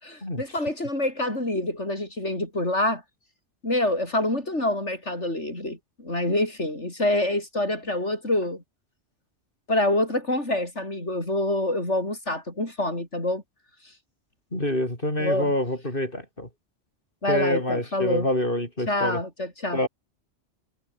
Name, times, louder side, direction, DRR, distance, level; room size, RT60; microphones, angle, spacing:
voice 1, 0.0-3.0 3.6-8.6 9.7-13.4 15.2-15.5 17.2-18.3 18.9-19.8, left 1 dB, 75° left, 7.8 m, -26 dB
voice 2, 14.5-16.5 17.3-19.2 19.7-19.9, left 1 dB, 45° left, 7.4 m, -26 dB
omnidirectional pair, 1.2 m